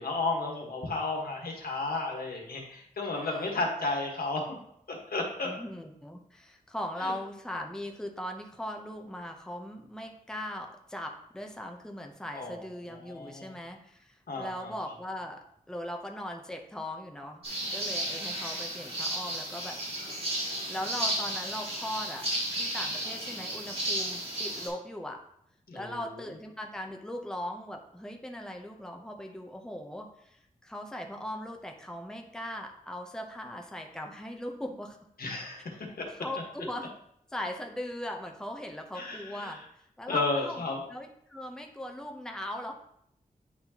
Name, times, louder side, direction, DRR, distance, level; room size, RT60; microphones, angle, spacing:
voice 1, 0.0-4.4 4.9-5.5 7.0-7.1 12.3-12.6 12.9-13.5 14.3-14.7 25.7-26.2 35.2-36.0 38.9-39.6 40.1-40.8, left 3 dB, 80° left, 0 dB, 1.4 m, -33 dB
voice 2, 3.1-3.6 5.4-17.4 17.7-19.8 20.7-25.2 25.7-35.0 36.1-36.9 37.3-39.6 40.0-40.6 40.9-42.7, left 1 dB, 5° left, 3 dB, 0.7 m, -39 dB
sound 1, 17.4-24.7, right 1 dB, 40° right, 2.7 m, -33 dB
9.6 x 4.3 x 2.9 m, 0.72 s
wide cardioid pair, 110°, 15 cm